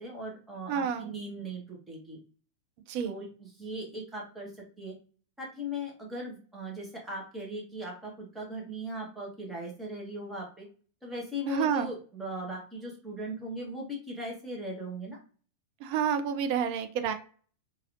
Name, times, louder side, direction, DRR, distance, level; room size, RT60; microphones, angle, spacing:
voice 1, 0.0-2.2 3.0-4.9 5.4-10.7 11.0-15.2, equal, 10° right, -2 dB, 1.2 m, -39 dB
voice 2, 0.7-1.2 2.9-3.1 11.5-11.9 15.8-17.1, right 7 dB, 45° right, 8 dB, 0.4 m, -29 dB
2.8 x 2.7 x 2.6 m, 0.41 s
figure-of-eight pair, 90°, 0 cm